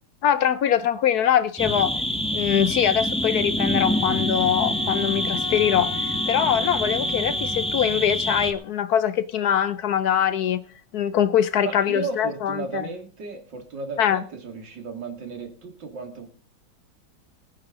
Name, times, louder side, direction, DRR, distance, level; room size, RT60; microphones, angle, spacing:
voice 1, 0.2-1.9 2.3-6.0 6.3-10.6 10.9-12.9 14.0-14.2, left 9 dB, 65° left, 1.2 m, -23 dB
sound 1, 1.6-8.5, left 1 dB, 5° left, 0.8 m, -26 dB
Wind instrument woodwind instrument, 3.8-8.1, left 4 dB, 40° left, 0.7 m, -38 dB
voice 2, 11.6-16.3, right 4 dB, 80° right, 2.9 m, -34 dB
20.0 x 9.1 x 3.7 m
omnidirectional pair, 1.9 m